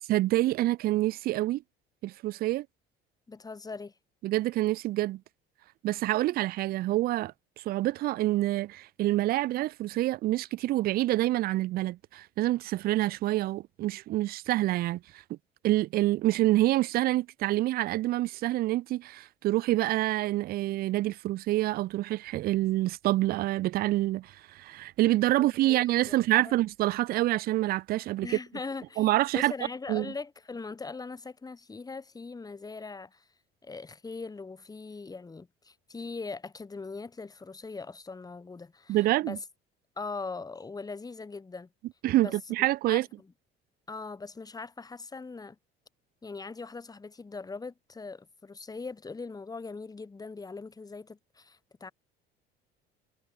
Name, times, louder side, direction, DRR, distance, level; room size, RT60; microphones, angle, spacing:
voice 1, 0.1-1.6 2.0-2.7 4.2-5.2 5.8-15.0 15.3-15.4 15.6-28.4 29.0-29.5 29.9-30.1 38.9-39.4 42.0-43.1, right 16 dB, 30° right, 0.4 m, -27 dB
voice 2, 3.3-3.9 25.3-25.8 26.0-26.6 28.2-29.1 29.3-33.3 33.6-39.0 39.2-39.4 40.0-41.7 42.1-42.3 42.9-43.3 43.9-45.6 46.2-51.9, left 4 dB, 10° left, 0.9 m, -41 dB
figure-of-eight pair, 60°, 30 cm